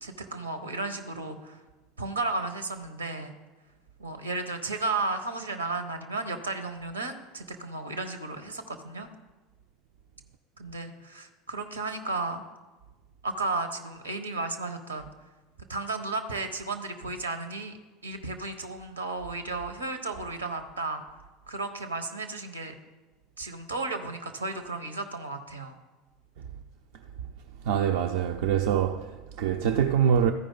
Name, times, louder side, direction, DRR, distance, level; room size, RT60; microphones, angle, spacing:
voice 1, 0.0-1.6 2.0-3.3 4.0-9.1 10.6-12.4 13.2-15.1 15.7-17.8 18.0-21.0 21.5-22.7 23.4-25.8, right 3 dB, 85° right, 0.8 m, -34 dB
voice 2, 27.6-30.3, right 8 dB, 60° right, 0.4 m, -24 dB
14.0 x 4.9 x 3.8 m
figure-of-eight pair, 75°, 0 cm